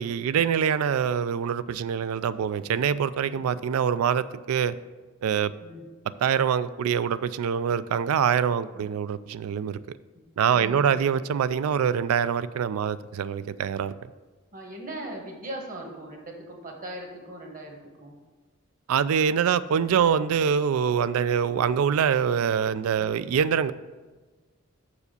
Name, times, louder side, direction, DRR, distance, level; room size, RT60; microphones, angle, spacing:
voice 1, 0.0-4.7 5.2-5.5 6.2-10.0 10.4-13.9 18.9-23.7, right 7 dB, 90° right, 15 dB, 0.3 m, -24 dB
voice 2, 10.5-11.0 14.5-18.2, right 1 dB, 40° right, 1 dB, 1.3 m, -39 dB
6.7 x 4.9 x 6.7 m, 1.3 s
head